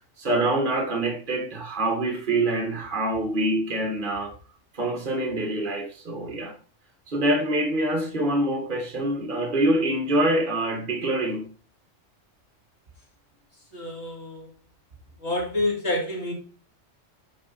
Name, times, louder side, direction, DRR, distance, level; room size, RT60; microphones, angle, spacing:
voice 1, 0.2-4.3 4.7-6.5 7.1-11.5, right 1 dB, 40° right, 1.8 m, -25 dB
voice 2, 13.7-14.5 15.2-16.3, left 1 dB, 60° left, 2.6 m, -28 dB
8.8 x 5.2 x 4.1 m
omnidirectional pair, 1.3 m